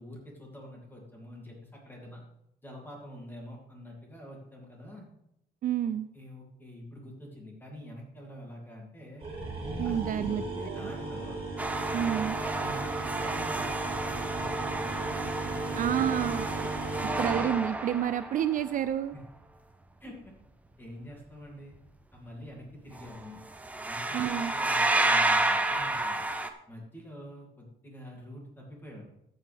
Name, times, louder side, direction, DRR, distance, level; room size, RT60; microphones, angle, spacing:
voice 1, 0.0-2.2 2.6-5.1 5.8-9.2 9.8-11.4 12.5-15.1 15.4-16.2 19.1-19.2 20.0-20.3 20.8-21.8 22.1-23.4 23.8-26.2 26.7-29.0, left 1 dB, 10° left, -1 dB, 2.4 m, -46 dB
voice 2, 5.6-6.1 9.8-10.8 11.9-12.4 15.8-16.5 17.2-19.1 24.1-24.5, right 10 dB, 50° right, 13 dB, 0.4 m, -29 dB
sound 1, 9.2-17.5, right 2 dB, 30° right, 2.8 m, -36 dB
sound 2, 11.6-18.7 23.0-23.2 23.5-26.5, right 2 dB, 10° right, 0.6 m, -30 dB
13.5 x 8.2 x 3.4 m, 0.81 s
cardioid pair, 170°, 17 cm